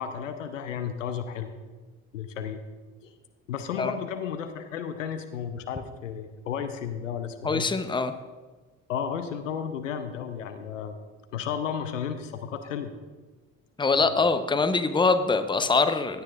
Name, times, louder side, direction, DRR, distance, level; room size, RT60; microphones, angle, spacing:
voice 1, 0.0-1.5 2.1-2.6 3.0-3.1 3.5-7.7 8.9-11.0 11.3-12.9 14.1-14.2, left 8 dB, 80° left, 9 dB, 0.8 m, -33 dB
voice 2, 7.4-8.1 13.8-16.2, left 4 dB, 10° left, 10 dB, 0.8 m, -23 dB
16.5 x 9.3 x 2.5 m, 1.3 s
figure-of-eight pair, 55°, 38 cm